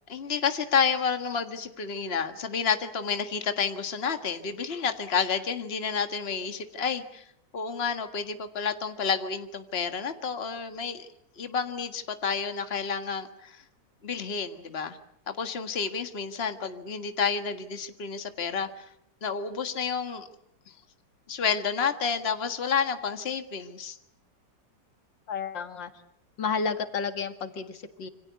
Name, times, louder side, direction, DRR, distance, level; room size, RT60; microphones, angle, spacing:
voice 1, 0.1-7.2 7.5-11.1 11.4-13.6 14.0-15.0 15.3-18.7 19.2-20.3 21.3-24.0, left 6 dB, 35° left, 8 dB, 1.8 m, -30 dB
voice 2, 25.3-25.9 26.4-28.1, left 5 dB, 90° left, 9 dB, 2.5 m, -31 dB
27.5 x 25.5 x 8.2 m, 0.74 s
omnidirectional pair, 1.9 m